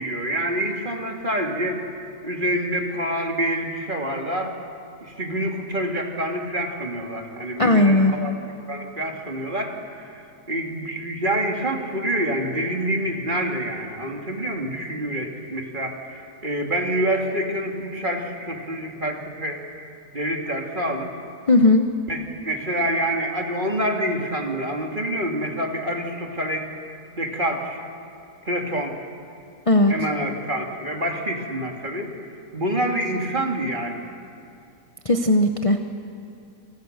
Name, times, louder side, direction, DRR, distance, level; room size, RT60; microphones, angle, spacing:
voice 1, 0.0-1.8 2.2-4.5 5.0-8.3 8.7-19.6 20.1-21.1 22.1-26.9 27.2-27.8 28.4-28.9 29.9-32.1 32.5-34.1, right 1 dB, 30° right, 2 dB, 2.5 m, -27 dB
voice 2, 7.6-8.1 21.5-21.8 29.7-29.9 35.0-35.8, left 2 dB, 25° left, 5 dB, 0.9 m, -17 dB
28.5 x 24.5 x 6.6 m, 2.5 s
omnidirectional pair, 1.7 m